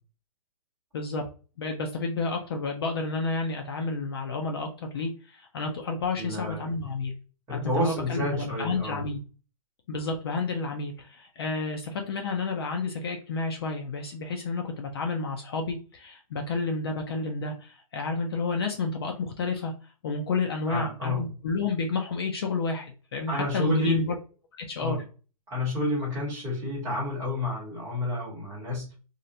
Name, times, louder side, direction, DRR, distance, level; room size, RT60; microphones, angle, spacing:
voice 1, 0.9-1.3 1.6-7.1 7.5-9.2 9.9-19.7 20.0-24.2 24.5-25.0, left 3 dB, 40° left, 3 dB, 0.4 m, -30 dB
voice 2, 6.2-6.7 7.5-9.0 20.7-21.3 23.3-24.0 24.8-25.0 25.5-28.9, left 1 dB, 15° right, -5 dB, 1.0 m, -30 dB
2.4 x 2.1 x 2.6 m, 0.35 s
hypercardioid pair, 165°, 19 cm